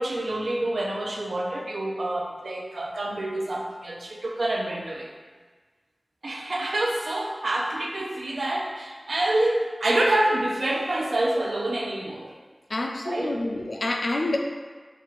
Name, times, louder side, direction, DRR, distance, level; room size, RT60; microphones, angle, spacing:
voice 1, 0.0-5.1 6.2-12.3 13.0-13.4, right 1 dB, 80° right, 0 dB, 0.5 m, -27 dB
voice 2, 12.7-14.4, left 2 dB, 70° left, 2 dB, 0.4 m, -27 dB
5.9 x 2.4 x 3.0 m, 1.4 s
wide cardioid pair, 70°, 0 cm